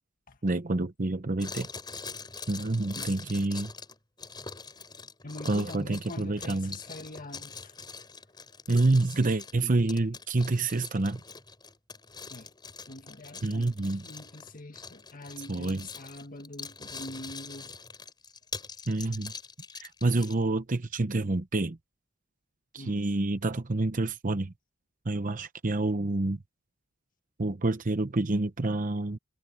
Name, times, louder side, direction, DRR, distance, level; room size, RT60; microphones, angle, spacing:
voice 1, 0.4-1.7 2.5-3.7 5.4-6.7 8.7-11.2 13.4-14.0 15.5-15.9 18.9-19.3 19.8-21.8 22.7-24.5 25.1-26.4 27.4-29.2, right 2 dB, 40° right, 0.8 m, -28 dB
sound 1, 1.4-20.4, left 5 dB, 20° left, 6.5 m, -44 dB
voice 2, 5.2-7.7 12.3-12.5 12.9-17.7 22.7-23.0, left 1 dB, 40° left, 1.8 m, -44 dB
head